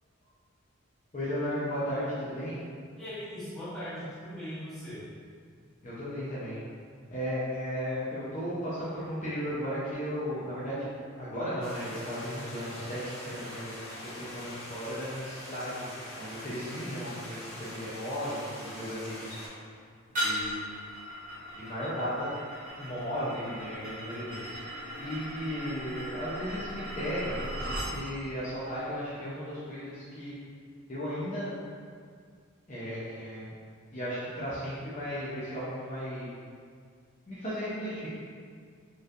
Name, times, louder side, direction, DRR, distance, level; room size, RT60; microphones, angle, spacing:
voice 1, 1.1-2.6 5.8-6.6 7.1-10.9 11.1-13.0 13.3-15.9 16.2-19.4 20.2-20.6 21.6-22.3 22.8-24.5 25.0-27.4 27.7-30.3 30.9-31.5 32.7-33.5 33.9-36.3 37.3-38.1, equal, 35° left, -10 dB, 0.7 m, -35 dB
voice 2, 2.9-5.0, equal, ahead, -13 dB, 1.1 m, -39 dB
sound 1, 11.6-19.5, left 1 dB, 65° left, 1.3 m, -43 dB
sound 2, 20.1-27.9, equal, 40° right, 1.2 m, -37 dB
4.4 x 3.2 x 2.5 m, 2.1 s
head